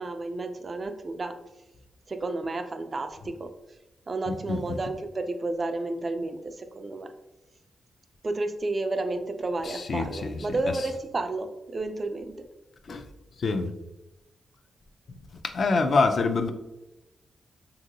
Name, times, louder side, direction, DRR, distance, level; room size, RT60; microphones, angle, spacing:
voice 1, 0.0-1.3 2.1-3.5 4.1-7.1 8.2-12.4, right 2 dB, 45° right, 0.3 m, -31 dB
voice 2, 4.3-4.8 9.7-10.4 12.9-13.0 13.4-13.7 15.5-16.5, left 3 dB, 60° left, 0.3 m, -26 dB
2.9 x 2.7 x 2.6 m
cardioid pair, 60°, 0 cm